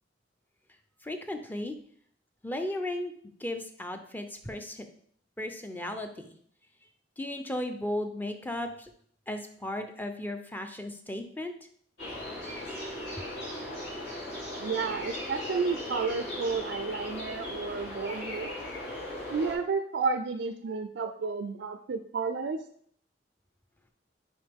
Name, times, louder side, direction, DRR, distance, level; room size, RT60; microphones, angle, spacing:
voice 1, 1.0-1.7 2.4-3.1 3.4-4.9 5.4-6.4 7.2-8.9 9.3-11.5, left 1 dB, 10° left, 6 dB, 0.5 m, -35 dB
sound 1, 12.0-19.6, left 1 dB, 65° left, 2.9 m, -38 dB
voice 2, 14.6-18.5 19.3-22.6, right 5 dB, 65° right, 7 dB, 0.4 m, -31 dB
6.3 x 4.9 x 3.5 m, 0.62 s
head